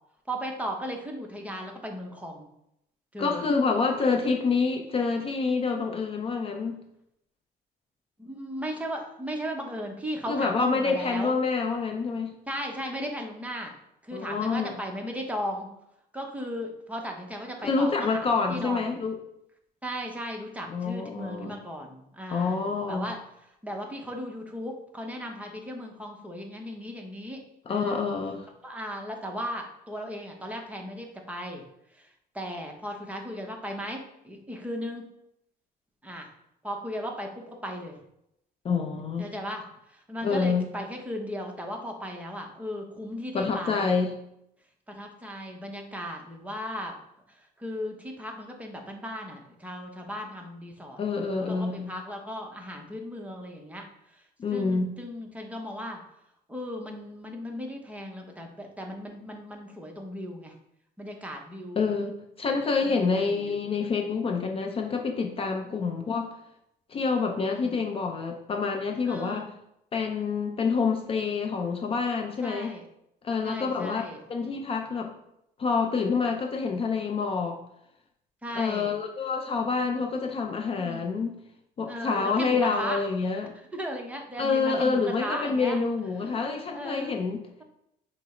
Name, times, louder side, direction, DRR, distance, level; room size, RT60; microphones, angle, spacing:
voice 1, 0.3-2.5 3.1-3.5 8.2-11.4 12.5-13.7 14.0-15.7 16.1-18.9 19.8-27.4 27.7-28.0 28.6-31.6 31.9-35.1 36.0-36.3 36.6-38.0 39.2-44.0 44.9-47.0 47.3-51.0 51.3-56.0 56.5-60.6 61.0-62.0 62.8-63.5 65.6-65.8 67.5-67.8 69.0-69.5 72.4-72.8 73.4-74.2 78.4-78.9 80.8-81.1 81.9-83.0 83.7-85.8 86.2-86.4 86.7-87.2, equal, 10° right, 2 dB, 0.7 m, -36 dB
voice 2, 3.2-6.8 10.3-12.3 14.1-14.7 17.6-19.2 20.7-21.5 22.3-23.1 27.7-28.5 38.6-39.3 40.2-40.6 43.3-44.1 51.0-51.9 54.4-54.9 61.8-66.3 66.9-69.4 69.9-72.7 73.2-74.0 74.3-75.1 75.6-77.6 78.6-81.3 81.8-83.5 84.4-87.4, left 4 dB, 35° left, 3 dB, 0.5 m, -27 dB
6.0 x 2.0 x 4.3 m, 0.79 s
cardioid pair, 110°, 17 cm